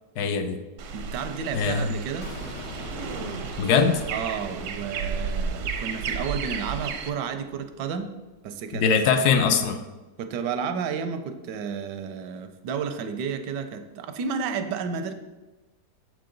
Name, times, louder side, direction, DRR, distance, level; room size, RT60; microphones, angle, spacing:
voice 1, 0.2-0.6 1.5-2.0 3.6-4.0 8.8-9.8, left 6 dB, 70° left, 8 dB, 1.1 m, -22 dB
sound 1, 0.8-7.1, right 5 dB, 70° right, 0.7 m, -33 dB
voice 2, 0.9-2.3 4.1-8.1 8.4-9.1 10.2-15.1, right 6 dB, 85° right, 8 dB, 1.2 m, -31 dB
sound 2, 2.2-8.0, left 1 dB, 90° left, 2.3 m, -42 dB
7.2 x 4.8 x 3.8 m, 1.1 s
omnidirectional pair, 1.8 m